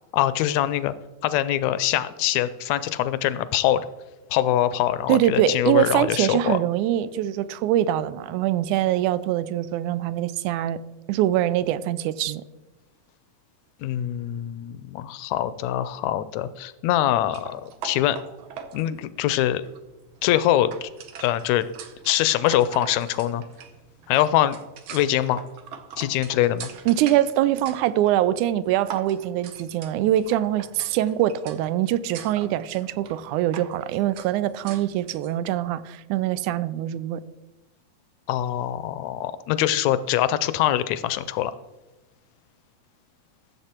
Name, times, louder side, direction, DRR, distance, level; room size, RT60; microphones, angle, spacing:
voice 1, 0.1-0.9 1.2-3.8 4.3-6.6 13.8-18.2 18.7-19.6 20.2-20.9 21.2-21.7 22.0-23.4 24.1-24.6 24.9-25.4 26.0-26.7 38.3-41.5, left 12 dB, 80° left, 15 dB, 1.7 m, -23 dB
voice 2, 5.1-10.8 11.1-12.4 26.9-37.2, right 12 dB, 90° right, 15 dB, 2.1 m, -23 dB
sound 1, 17.2-35.3, right 8 dB, 70° right, 1.2 m, -43 dB
14.5 x 7.2 x 4.4 m, 1.1 s
omnidirectional pair, 3.4 m